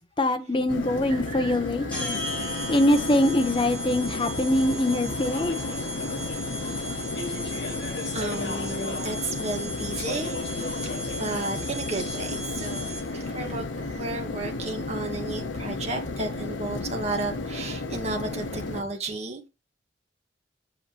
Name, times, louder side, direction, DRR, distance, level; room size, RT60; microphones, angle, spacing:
voice 1, 0.0-2.2 2.7-5.6, left 1 dB, 25° left, 1.0 m, -23 dB
sound 1, 0.7-18.8, left 3 dB, 85° left, 0.9 m, -33 dB
voice 2, 0.8-2.4 6.7-7.0 8.1-10.8 11.2-19.5, right 2 dB, 35° right, 1.8 m, -34 dB
sound 2, 1.9-13.3, left 1 dB, 5° left, 5.8 m, -36 dB
Speech / Chatter, 4.1-13.5, left 3 dB, 65° left, 2.0 m, -40 dB
8.5 x 7.9 x 3.0 m
head